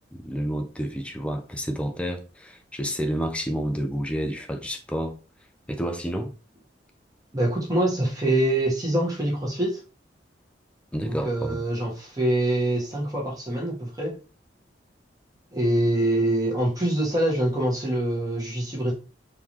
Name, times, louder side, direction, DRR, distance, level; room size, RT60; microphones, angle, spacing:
voice 1, 0.1-5.2 5.7-6.3 10.9-11.6, equal, 5° left, 0.5 m, -29 dB
voice 2, 7.3-9.8 11.0-14.2 15.5-18.9, right 1 dB, 20° right, 1.4 m, -25 dB
3.8 x 2.7 x 3.1 m
head